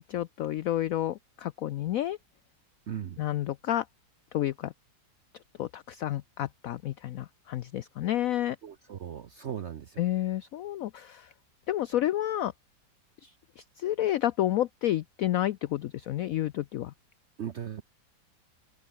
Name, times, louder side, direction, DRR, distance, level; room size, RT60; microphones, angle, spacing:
voice 1, 0.0-2.2 3.2-3.9 4.3-4.7 5.6-8.6 10.0-11.3 11.7-12.5 13.2-16.9, left 13 dB, 80° left, 0.7 m, -30 dB
voice 2, 2.9-3.2 8.6-10.0 17.4-17.8, right 9 dB, 60° right, 0.7 m, -38 dB
open air
omnidirectional pair, 2.0 m